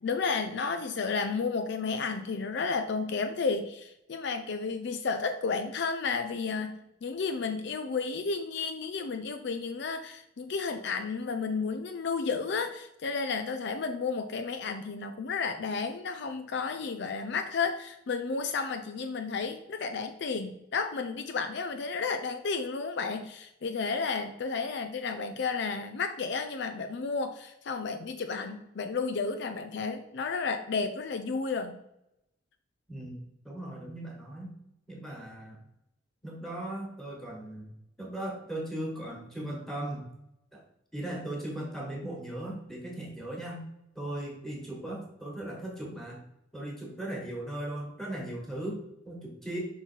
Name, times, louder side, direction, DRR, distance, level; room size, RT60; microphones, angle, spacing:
voice 1, 0.0-31.8, left 4 dB, 60° left, 7 dB, 0.4 m, -32 dB
voice 2, 32.9-34.5 34.9-35.6 36.2-37.7 38.0-40.1 40.5-40.6 40.9-43.6 43.9-46.2 46.5-49.6, right 1 dB, ahead, -2 dB, 1.6 m, -38 dB
5.6 x 4.0 x 4.5 m, 0.84 s
head